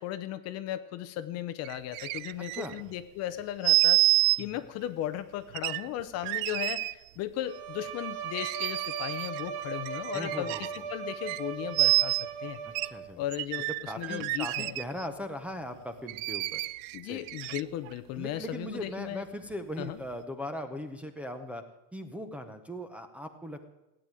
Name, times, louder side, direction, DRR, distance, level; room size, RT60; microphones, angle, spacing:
voice 1, 0.0-4.0 4.4-12.6 13.2-14.7 16.9-19.2 19.8-20.0, left 12 dB, 35° left, 12 dB, 0.6 m, -36 dB
sound 1, 1.6-2.9 3.6-4.4 5.5-6.9 8.3-9.5 9.9-10.8 11.3-11.4 11.7-12.3 12.8-12.9 13.3-15.1 16.1-17.9 18.5-18.6, right 21 dB, 55° right, 0.5 m, -28 dB
Bowed string instrument, 7.5-13.3, right 7 dB, 75° right, 1.5 m, -38 dB
voice 2, 10.1-10.9 12.8-13.2 13.9-16.6 17.0-17.2 18.2-21.6 21.9-23.7, equal, 5° right, 3 dB, 0.7 m, -39 dB
16.5 x 9.1 x 9.1 m, 0.99 s
supercardioid pair, 165°, 45 cm